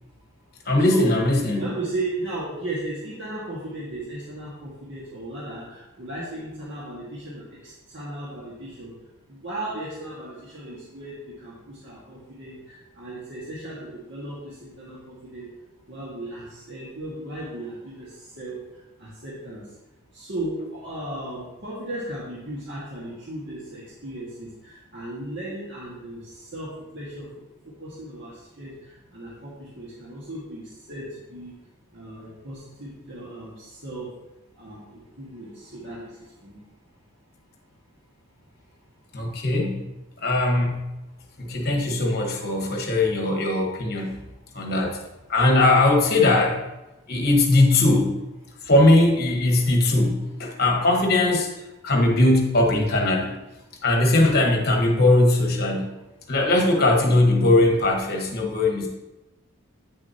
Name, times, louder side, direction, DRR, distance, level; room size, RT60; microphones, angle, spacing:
voice 1, 0.7-1.7 39.1-39.8 40.2-40.7 41.4-44.2 44.5-45.0 45.3-46.6 47.1-48.2 48.7-51.5 51.8-53.3 53.8-55.9 56.3-58.9, left 2 dB, 45° left, 1 dB, 1.3 m, -20 dB
voice 2, 1.6-8.9 9.3-15.5 15.9-18.6 19.0-19.6 20.1-27.3 27.8-31.0 31.3-31.5 31.9-34.1 34.5-36.1 36.4-36.6, right 1 dB, 55° right, -7 dB, 1.6 m, -35 dB
8.8 x 6.4 x 2.8 m, 0.98 s
head